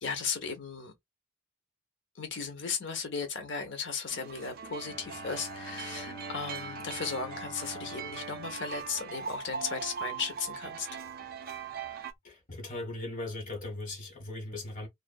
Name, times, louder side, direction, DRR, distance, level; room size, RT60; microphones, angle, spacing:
voice 1, 0.0-0.9 2.1-10.9, left 5 dB, 65° left, 0.8 m, -36 dB
sound 1, 4.1-12.1, right 5 dB, 50° right, 0.5 m, -41 dB
Bowed string instrument, 4.8-9.7, equal, 25° left, 0.6 m, -46 dB
voice 2, 12.2-14.9, left 2 dB, 40° left, 1.3 m, -38 dB
2.5 x 2.5 x 2.3 m
head